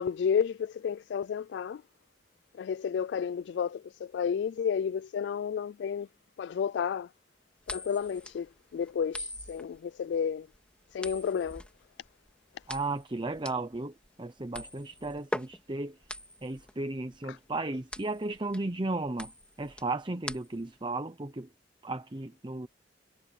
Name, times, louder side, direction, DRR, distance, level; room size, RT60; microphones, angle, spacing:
voice 1, 0.0-1.8 2.6-6.1 6.4-7.1 7.7-10.5 10.9-11.6 17.3-17.4, left 7 dB, 75° left, 0.3 m, -31 dB
sound 1, 7.6-20.8, left 1 dB, 5° left, 2.2 m, -42 dB
voice 2, 12.7-16.0 16.4-19.3 19.6-21.5 21.8-22.7, right 2 dB, 25° right, 0.8 m, -35 dB
head